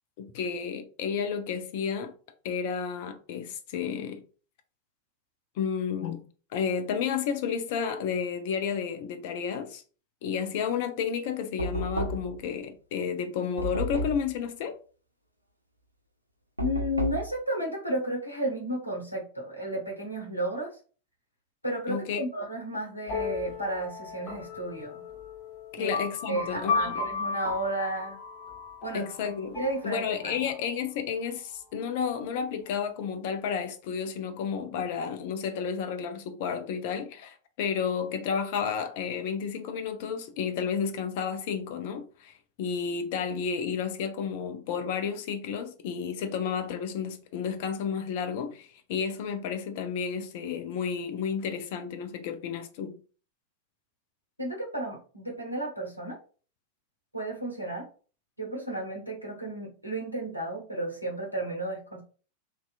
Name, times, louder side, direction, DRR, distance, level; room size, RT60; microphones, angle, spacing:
voice 1, 0.2-2.1 2.4-4.2 5.6-6.2 6.5-9.8 10.2-14.8 21.9-22.2 25.7-26.9 28.9-29.6 29.8-53.0, left 7 dB, 50° left, 0.4 m, -31 dB
Knock, 11.6-12.4 13.6-14.3 16.6-17.3, right 1 dB, 85° right, 0.4 m, -31 dB
voice 2, 16.6-20.8 21.6-25.0 25.8-26.0 26.3-28.2 28.8-29.1 29.5-30.4 54.4-56.2 57.1-57.9 58.4-62.0, right 1 dB, 90° left, 0.8 m, -33 dB
sound 1, 23.1-30.6, left 4 dB, 30° left, 0.9 m, -35 dB
2.7 x 2.2 x 2.3 m
figure-of-eight pair, 90°, 0 cm